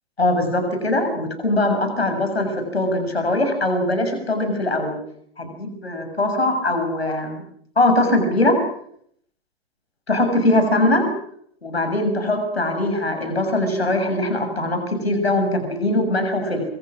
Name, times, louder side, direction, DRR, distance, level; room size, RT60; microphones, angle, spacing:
voice 1, 0.2-5.0 5.4-7.4 7.7-8.6 10.1-11.1 11.6-16.6, left 1 dB, 90° left, 5 dB, 6.9 m, -21 dB
25.5 x 25.5 x 6.2 m, 0.68 s
figure-of-eight pair, 95°, 30 cm